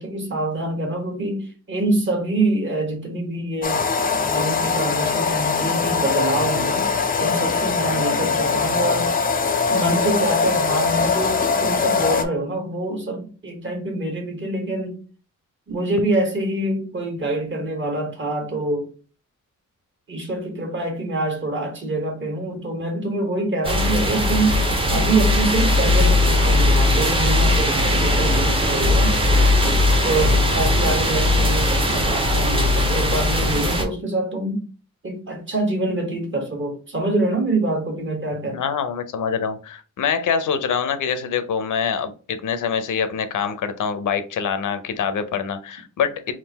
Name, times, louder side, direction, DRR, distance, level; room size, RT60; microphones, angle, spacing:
voice 1, 0.0-3.8 4.1-6.9 7.2-9.1 9.7-15.0 15.7-18.9 20.1-24.6 24.9-29.1 30.0-34.7 35.0-38.6, right 2 dB, 40° right, 1.2 m, -25 dB
sound 1, 3.6-12.2, left 5 dB, 30° left, 0.4 m, -21 dB
voice 2, 7.9-8.3 29.6-29.7 30.3-30.6 38.5-46.3, left 7 dB, 75° left, 0.6 m, -25 dB
sound 2, 23.6-33.8, left 1 dB, 15° right, 0.7 m, -19 dB
3.7 x 2.5 x 4.0 m
wide cardioid pair, 165°, 31 cm